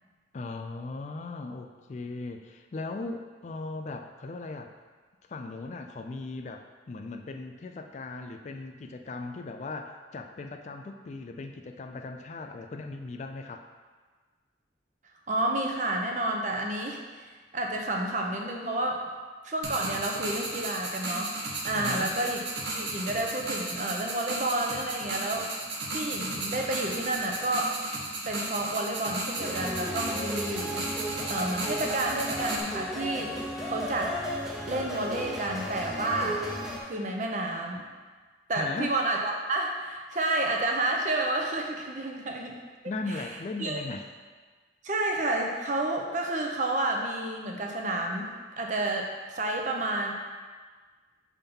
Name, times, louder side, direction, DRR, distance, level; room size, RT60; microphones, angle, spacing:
voice 1, 0.3-4.7 5.3-13.7 21.7-22.2 38.5-38.9 42.9-44.1, left 3 dB, 40° left, 5 dB, 0.3 m, -38 dB
voice 2, 15.3-19.1 19.4-22.4 22.7-25.5 25.9-27.8 28.3-30.9 31.3-33.4 33.7-34.2 34.7-36.4 36.8-37.9 38.5-42.5 43.6-43.8 44.8-48.3 48.6-50.1, right 2 dB, 40° right, 1 dB, 0.7 m, -30 dB
sound 1, 19.6-32.6, right 2 dB, 85° right, 0.9 m, -35 dB
sound 2, 29.4-36.8, equal, ahead, 0.7 m, -35 dB
5.7 x 3.6 x 5.3 m, 1.4 s
head